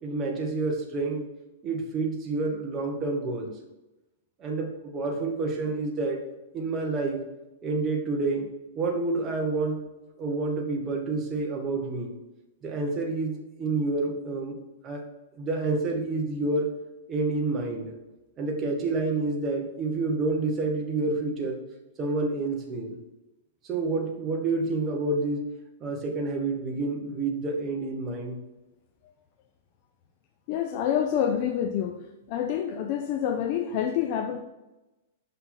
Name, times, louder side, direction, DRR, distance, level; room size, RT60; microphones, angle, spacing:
voice 1, 0.0-1.3 1.6-3.5 4.4-6.2 6.5-7.2 7.6-8.5 8.7-9.8 10.2-12.1 12.6-14.6 14.8-15.0 15.4-16.7 17.1-17.9 18.4-21.6 22.0-23.0 23.6-25.4 25.8-28.4, right 3 dB, 20° right, 1 dB, 1.3 m, -28 dB
voice 2, 30.5-32.0 32.3-34.4, left 9 dB, 40° left, 5 dB, 0.5 m, -27 dB
5.8 x 5.5 x 5.8 m, 1.0 s
supercardioid pair, 160°, 0 cm